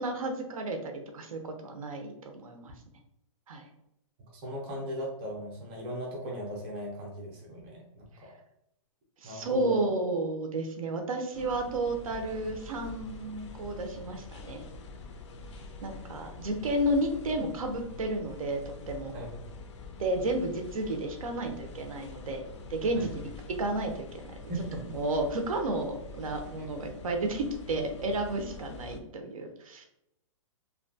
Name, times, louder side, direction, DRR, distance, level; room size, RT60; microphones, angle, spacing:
voice 1, 0.0-2.7 3.5-3.7 9.2-14.6 15.8-19.1 20.0-22.4 22.7-23.2 23.6-24.5 24.9-29.8, right 2 dB, 85° right, 4 dB, 0.6 m, -32 dB
voice 2, 4.3-8.3 9.2-9.8 19.1-19.4 22.9-23.0 24.5-24.8 26.6-26.7, equal, 20° right, -3 dB, 0.6 m, -38 dB
sound 1, 11.3-29.0, left 4 dB, 55° left, 0.4 m, -45 dB
2.7 x 2.2 x 2.6 m, 0.80 s
hypercardioid pair, 170°, 18 cm